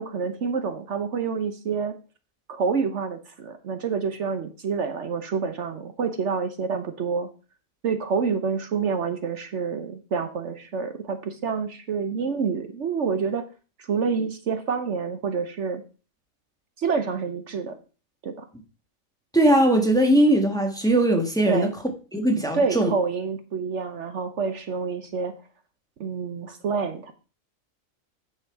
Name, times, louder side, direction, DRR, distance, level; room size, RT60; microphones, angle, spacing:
voice 1, 0.0-2.0 2.5-7.3 7.8-13.4 13.9-15.8 16.8-17.7 18.2-18.5 21.5-21.7 22.5-25.3 26.0-27.1, right 5 dB, 60° right, 1.1 m, -27 dB
voice 2, 19.3-21.7 22.1-22.9, right 1 dB, 5° left, 1.3 m, -20 dB
9.2 x 6.2 x 4.7 m
omnidirectional pair, 1.4 m